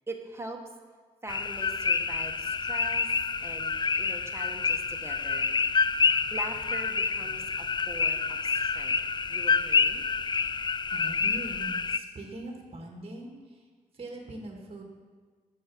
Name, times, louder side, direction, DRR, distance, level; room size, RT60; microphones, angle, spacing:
voice 1, 0.1-0.6 1.2-3.1 3.4-5.5 6.3-9.0 9.3-10.0, right 2 dB, 15° right, 2 dB, 1.6 m, -42 dB
sound 1, 1.3-12.0, left 5 dB, 30° left, 0.4 m, -28 dB
voice 2, 10.9-13.7 13.9-14.8, right 1 dB, 40° right, 0 dB, 2.0 m, -42 dB
9.2 x 7.3 x 6.2 m, 1.5 s
cardioid pair, 60°, 15 cm